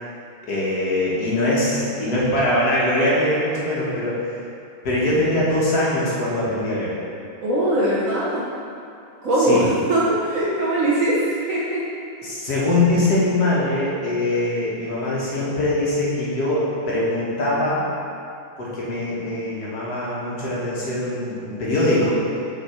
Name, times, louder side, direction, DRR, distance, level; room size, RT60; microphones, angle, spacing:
voice 1, 0.4-4.4 4.8-6.9 9.4-9.7 12.2-17.9 18.6-22.2, left 1 dB, 55° left, -7 dB, 1.6 m, -22 dB
voice 2, 7.4-8.4 9.2-11.2 11.5-11.8, right 1 dB, 55° right, -7 dB, 1.0 m, -21 dB
7.2 x 4.1 x 4.2 m, 2.5 s
omnidirectional pair, 2.2 m